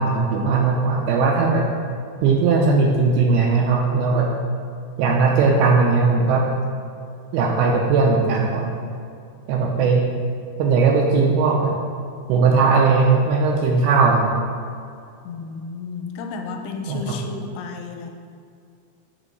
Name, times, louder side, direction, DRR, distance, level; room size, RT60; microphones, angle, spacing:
voice 1, 0.0-1.7 2.2-4.3 5.0-6.4 7.3-8.7 9.5-10.0 10.6-11.8 12.3-14.3 16.9-17.0, right 4 dB, 80° right, 0 dB, 2.3 m, -18 dB
voice 2, 15.2-18.1, left 4 dB, 80° left, 4 dB, 2.6 m, -32 dB
8.1 x 3.6 x 5.2 m, 2.4 s
omnidirectional pair, 4.9 m